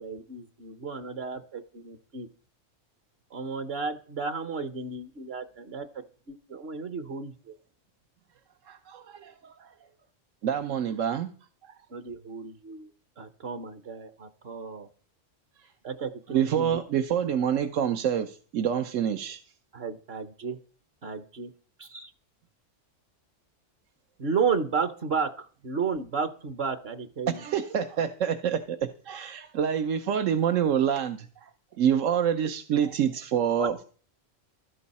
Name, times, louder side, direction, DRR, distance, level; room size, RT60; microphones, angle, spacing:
voice 1, 0.0-2.3 3.3-7.5 11.9-12.9 13.2-14.9 15.8-16.8 19.7-20.6 21.0-21.5 21.8-22.1 24.2-27.4 33.6-33.8, right 5 dB, 55° right, 10 dB, 1.1 m, -33 dB
voice 2, 8.7-9.7 10.4-11.3 16.3-19.4 27.4-31.5 31.8-33.8, right 8 dB, 80° right, 8 dB, 1.1 m, -27 dB
15.5 x 12.5 x 4.2 m, 0.43 s
omnidirectional pair, 1.3 m